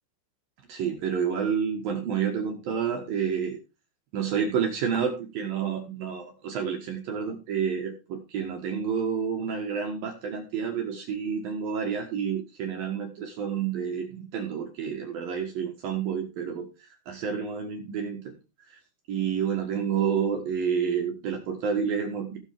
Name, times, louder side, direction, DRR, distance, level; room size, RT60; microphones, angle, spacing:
voice 1, 0.7-3.6 4.1-18.3 18.7-18.8 19.1-22.4, right 7 dB, 65° right, 2 dB, 2.5 m, -29 dB
16.0 x 7.2 x 3.6 m, 0.28 s
omnidirectional pair, 6.0 m